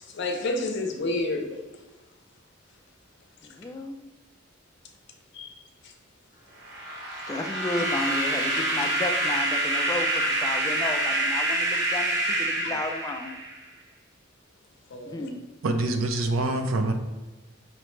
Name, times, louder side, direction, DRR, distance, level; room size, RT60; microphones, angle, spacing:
voice 1, 0.1-1.5 5.3-5.5 8.5-8.9 11.1-11.2 14.9-15.3, left 2 dB, 60° left, 3 dB, 0.6 m, -30 dB
voice 2, 3.4-3.9 7.3-13.4 15.1-15.4, left 2 dB, 20° left, 4 dB, 0.3 m, -33 dB
sound 1, 6.6-13.6, right 1 dB, 60° right, 0.9 m, -27 dB
voice 3, 15.6-16.9, right 2 dB, 90° right, 6 dB, 0.5 m, -25 dB
5.7 x 2.1 x 3.1 m, 1.2 s
head